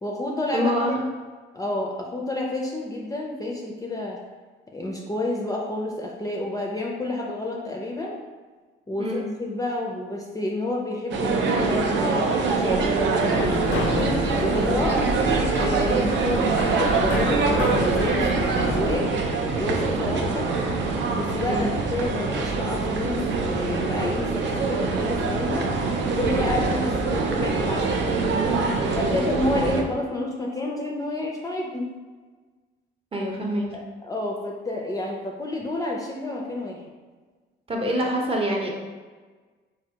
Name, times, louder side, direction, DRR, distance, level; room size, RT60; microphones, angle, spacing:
voice 1, 0.0-1.0 1.5-4.2 4.7-8.2 8.9-13.6 14.4-15.0 15.6-20.5 21.1-25.7 26.2-28.2 28.9-31.9 33.7-36.8, left 2 dB, 20° left, -1 dB, 0.4 m, -30 dB
voice 2, 0.5-1.1 9.0-9.2 14.5-14.8 15.9-16.1 21.5-21.7 29.1-29.3 33.1-33.8 37.7-38.7, equal, 30° right, -1 dB, 0.6 m, -26 dB
sound 1, 11.1-29.8, right 4 dB, 70° right, 0.4 m, -24 dB
sound 2, 13.3-19.0, left 2 dB, 90° left, 0.5 m, -29 dB
3.4 x 2.3 x 2.7 m, 1.4 s
cardioid pair, 90°, 20 cm